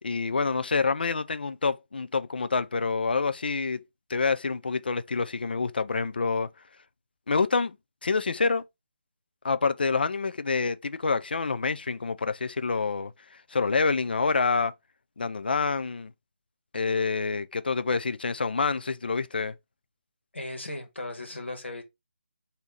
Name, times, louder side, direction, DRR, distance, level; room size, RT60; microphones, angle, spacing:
voice 1, 0.0-3.8 4.1-6.5 7.3-7.8 8.0-8.6 9.4-13.1 13.5-14.7 15.2-16.1 16.7-19.5, left 4 dB, 55° left, 0.4 m, -27 dB
voice 2, 20.3-21.8, left 2 dB, 75° left, 1.3 m, -37 dB
3.3 x 2.7 x 3.9 m
figure-of-eight pair, 150°, 6 cm